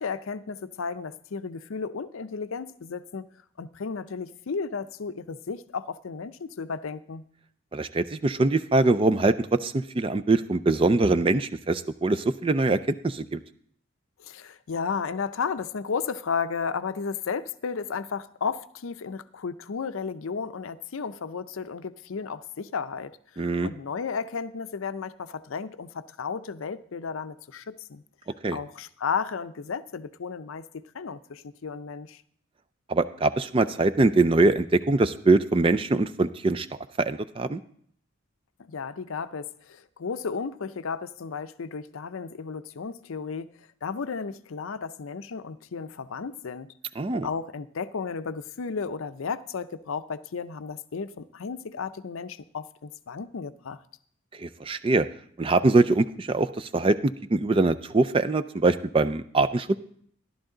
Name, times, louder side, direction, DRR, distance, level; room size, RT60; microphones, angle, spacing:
voice 1, 0.0-3.3 3.6-7.2 14.2-23.2 23.6-28.0 28.5-32.2 38.6-46.7 47.2-53.8, left 5 dB, 75° left, 0.5 m, -33 dB
voice 2, 7.7-13.4 23.4-23.7 28.4-28.6 32.9-36.7 37.0-37.6 47.0-47.3 54.4-55.1 55.4-59.8, right 2 dB, 25° right, 0.4 m, -23 dB
13.5 x 11.5 x 3.8 m
head